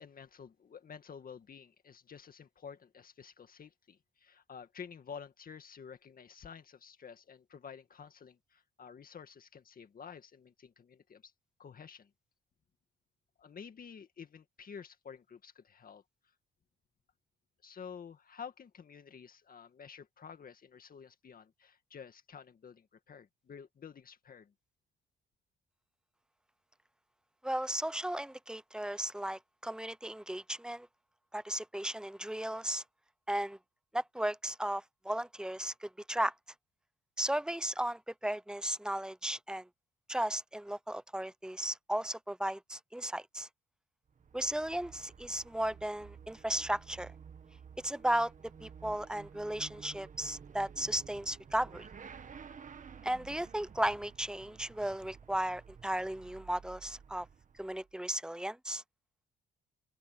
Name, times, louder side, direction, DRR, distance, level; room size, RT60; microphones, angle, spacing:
voice 1, 0.0-11.3 11.6-12.1 13.4-16.0 17.6-24.5, left 6 dB, 45° left, 2.0 m, -50 dB
voice 2, 27.4-30.9 31.3-32.8 33.3-33.6 33.9-36.3 37.2-39.7 40.1-43.5 44.3-47.1 47.8-48.3 48.6-51.9 53.0-57.3 57.6-58.8, right 1 dB, 5° right, 0.6 m, -35 dB
Motorcycle / Accelerating revving vroom, 44.1-57.9, right 6 dB, 40° right, 1.7 m, -53 dB
open air
cardioid pair, 90°, 20 cm